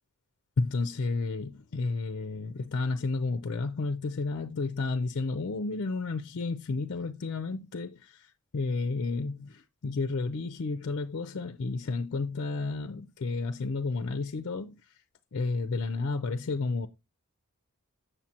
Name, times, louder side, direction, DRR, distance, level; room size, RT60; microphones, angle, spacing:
voice 1, 0.6-14.8 15.3-16.9, left 3 dB, 55° left, 0.5 m, -31 dB
7.2 x 6.8 x 2.8 m
head